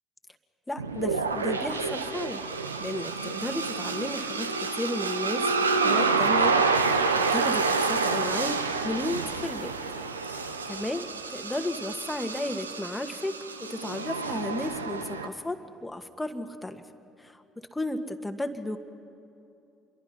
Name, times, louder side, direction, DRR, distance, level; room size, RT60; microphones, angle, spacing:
voice 1, 0.7-2.4 2.8-9.8 10.3-16.8 17.2-17.4 17.7-18.8, left 1 dB, 10° left, 7 dB, 1.6 m, -34 dB
sound 1, 0.8-15.3, right 4 dB, 85° right, 0.8 m, -28 dB
28.5 x 22.5 x 5.7 m, 2.7 s
figure-of-eight pair, 50°, 0 cm